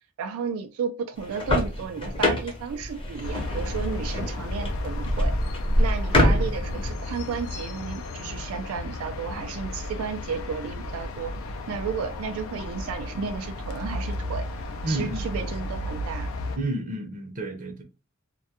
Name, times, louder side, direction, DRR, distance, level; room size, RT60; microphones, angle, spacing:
voice 1, 0.2-5.3 5.8-11.3 11.7-14.5 14.9-16.3, right 6 dB, 90° right, 0.3 m, -33 dB
sound 1, 1.2-6.9, left 1 dB, 25° left, 0.6 m, -25 dB
sound 2, 3.2-16.6, left 2 dB, 75° left, 0.4 m, -34 dB
voice 2, 14.8-15.5 16.6-17.8, right 1 dB, 40° right, 0.6 m, -31 dB
2.2 x 2.1 x 2.7 m
head